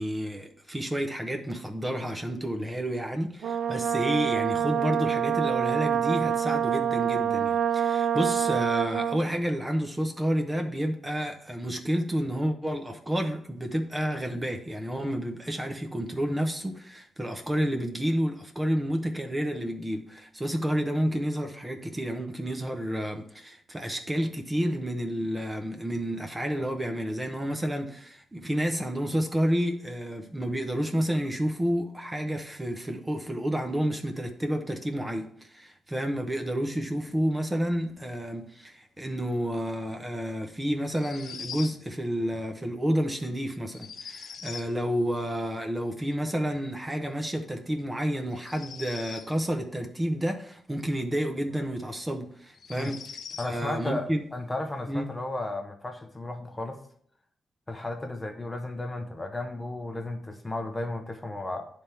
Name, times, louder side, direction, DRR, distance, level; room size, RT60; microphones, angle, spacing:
voice 1, 0.0-53.2 53.5-54.2 54.9-55.1, equal, 15° right, 4 dB, 0.7 m, -30 dB
Brass instrument, 3.4-9.3, right 8 dB, 75° right, 0.3 m, -26 dB
sound 1, 40.8-41.8 43.7-44.7 48.3-49.3 51.5-51.6 52.5-53.5, left 6 dB, 65° left, 0.5 m, -42 dB
voice 2, 53.4-56.8 57.7-61.7, left 2 dB, 15° left, 4 dB, 0.8 m, -34 dB
9.5 x 3.5 x 4.4 m, 0.63 s
cardioid pair, 120°, 0 cm